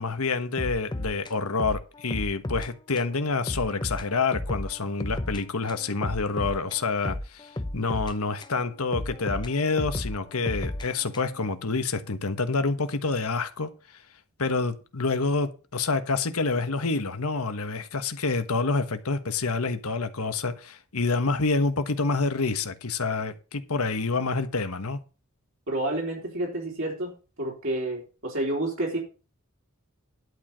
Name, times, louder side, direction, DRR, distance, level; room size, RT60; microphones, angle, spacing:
voice 1, 0.0-14.0 14.4-25.0, left 3 dB, 80° left, 9 dB, 1.3 m, -27 dB
sound 1, 0.6-2.7 3.0-3.1 3.5-5.4 5.7-8.6 8.9-11.5, left 1 dB, 20° left, 0.7 m, -34 dB
voice 2, 25.7-27.1 27.4-29.0, right 1 dB, 60° right, -2 dB, 3.5 m, -29 dB
11.5 x 4.7 x 7.4 m, 0.33 s
head